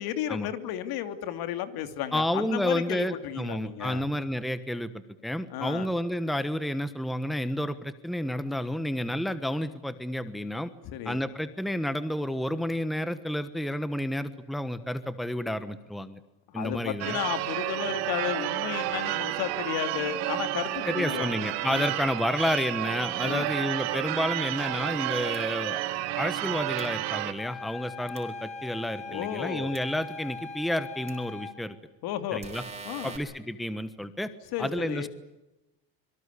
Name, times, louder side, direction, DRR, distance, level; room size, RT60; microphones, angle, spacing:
voice 1, 0.0-4.0 5.5-5.9 10.8-11.2 16.5-21.4 21.7-21.9 23.2-23.5 29.1-29.7 32.0-32.4 32.9-33.1 34.5-35.1, left 11 dB, 65° left, 9 dB, 2.9 m, -33 dB
voice 2, 2.1-10.7 11.0-16.2 16.5-17.2 20.9-25.8 26.2-31.7 32.3-32.6 33.0-34.3 34.6-35.1, left 1 dB, ahead, 12 dB, 1.2 m, -30 dB
Church bell / Car / Alarm, 17.0-27.3, right 15 dB, 75° right, 2.6 m, -31 dB
sound 1, 25.3-25.4 26.8-26.9 28.1-28.2 29.7-29.8 31.1-31.2 32.4-33.2, right 4 dB, 15° right, 5.0 m, -42 dB
sound 2, 27.3-31.6, left 4 dB, 15° left, 6.7 m, -40 dB
26.0 x 23.5 x 8.4 m, 0.98 s
cardioid pair, 140°, 39 cm